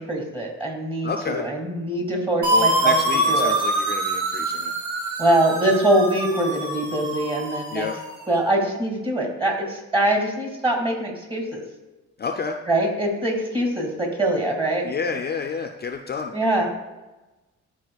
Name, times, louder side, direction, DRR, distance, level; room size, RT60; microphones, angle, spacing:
voice 1, 0.0-3.0 3.3-3.6 5.2-7.9 8.3-11.6 12.7-14.9 16.3-16.7, right 1 dB, 15° right, 1 dB, 2.0 m, -23 dB
voice 2, 1.0-1.4 2.5-4.7 7.7-8.0 12.2-12.6 14.8-16.3, left 5 dB, 35° left, 4 dB, 0.5 m, -29 dB
sound 1, 2.4-8.2, right 2 dB, 85° right, 1.8 m, -24 dB
11.0 x 4.2 x 2.3 m, 1.1 s
cardioid pair, 90°, 30 cm